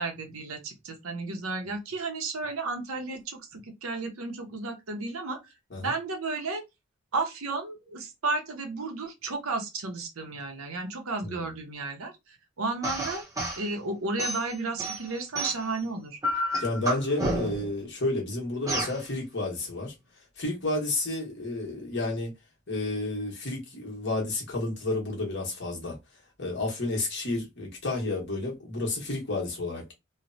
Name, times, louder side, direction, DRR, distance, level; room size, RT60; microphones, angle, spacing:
voice 1, 0.0-5.4 5.8-6.6 7.1-13.2 13.6-16.2, right 3 dB, 85° right, 0.7 m, -33 dB
sound 1, 12.8-13.6 14.2-15.8 16.2-17.7 18.7-19.0, right 1 dB, 15° right, 0.7 m, -30 dB
voice 2, 16.6-19.9 20.4-22.3 22.7-26.0 26.4-29.9, left 2 dB, 55° left, 1.2 m, -31 dB
3.0 x 2.0 x 2.6 m
head